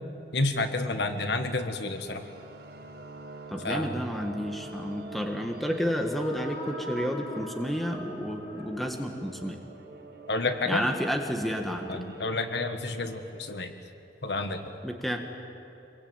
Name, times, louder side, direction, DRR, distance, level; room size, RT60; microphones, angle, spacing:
voice 1, 0.3-2.2 3.6-4.0 10.3-10.9 11.9-13.7 14.2-14.6, left 2 dB, 75° left, 7 dB, 1.5 m, -30 dB
sound 1, 1.5-13.5, right 3 dB, 70° right, 4.8 m, -47 dB
voice 2, 3.5-9.6 10.7-12.0 14.8-15.2, equal, ahead, 2 dB, 1.6 m, -31 dB
sound 2, 5.8-9.7, left 1 dB, 25° left, 2.2 m, -42 dB
26.5 x 22.0 x 9.0 m, 3.0 s
head